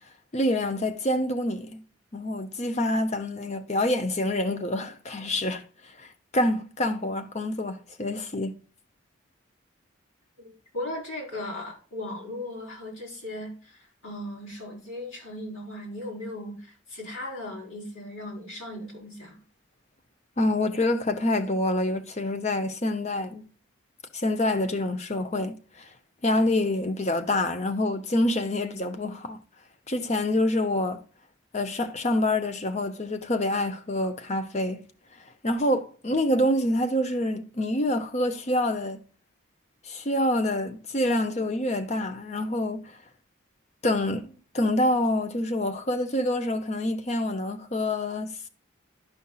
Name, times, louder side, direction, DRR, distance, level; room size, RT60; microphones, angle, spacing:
voice 1, 0.3-1.8 2.1-5.7 6.0-6.1 6.3-8.6 20.4-23.4 24.1-25.9 26.2-29.4 29.9-31.0 31.5-34.9 35.4-39.0 39.8-43.0 43.8-48.5, left 1 dB, 35° left, 0.7 m, -26 dB
voice 2, 10.4-19.4, left 1 dB, 85° left, 4.2 m, -37 dB
11.5 x 5.4 x 2.3 m
head